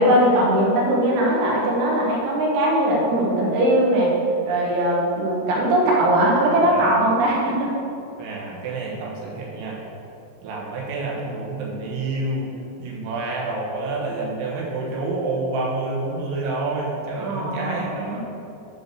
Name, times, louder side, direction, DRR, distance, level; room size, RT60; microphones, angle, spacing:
voice 1, 0.0-4.1 4.5-7.7 17.2-18.2, right 1 dB, 65° right, -4 dB, 3.2 m, -20 dB
voice 2, 8.2-9.8 10.4-12.5 12.8-18.2, right 2 dB, 85° right, -4 dB, 3.7 m, -28 dB
8.5 x 5.3 x 6.4 m, 2.7 s
omnidirectional pair, 5.3 m